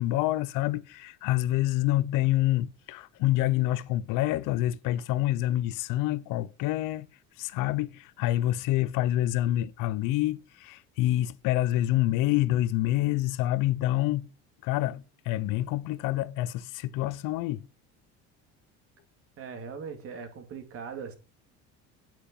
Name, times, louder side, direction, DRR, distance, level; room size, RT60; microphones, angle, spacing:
voice 1, 0.0-7.1 7.4-14.3 14.6-17.7, left 15 dB, 75° left, 0.8 m, -27 dB
voice 2, 19.4-21.1, right 6 dB, 45° right, 2.7 m, -40 dB
9.4 x 9.0 x 5.4 m
cardioid pair, 155°, 32 cm